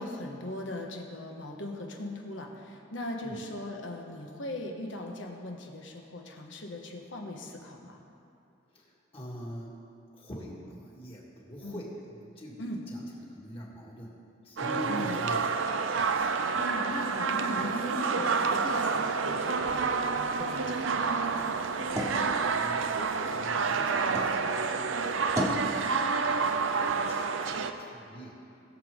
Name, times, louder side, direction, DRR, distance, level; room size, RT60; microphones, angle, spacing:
voice 1, 0.0-8.0 11.6-11.8 12.6-12.8 14.9-15.2 16.5-21.3, left 1 dB, 70° left, 1 dB, 1.4 m, -39 dB
voice 2, 8.7-9.8 10.1-14.2 14.4-16.1 21.9-28.4, equal, 30° left, -4 dB, 2.2 m, -44 dB
sound 1, 14.6-27.7, right 5 dB, 85° right, 0.6 m, -29 dB
sound 2, 20.6-24.4 24.8-25.7, equal, 15° right, 1.3 m, -37 dB
20.5 x 7.2 x 3.8 m, 2.6 s
head